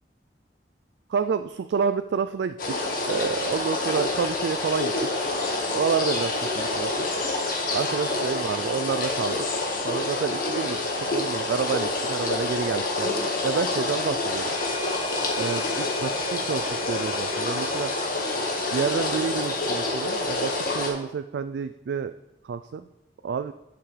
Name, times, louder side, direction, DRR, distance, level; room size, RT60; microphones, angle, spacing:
voice 1, 1.1-4.9 5.7-6.9 7.7-9.4 9.8-13.1 13.4-14.5 15.3-17.9 18.7-22.1 22.4-22.9 23.2-23.5, right 6 dB, 70° right, 11 dB, 0.3 m, -29 dB
sound 1, 2.6-20.9, left 2 dB, 50° left, 1.6 m, -27 dB
sound 2, 14.5-18.1, left 6 dB, 30° left, 0.9 m, -40 dB
11.5 x 5.8 x 3.3 m, 0.93 s
head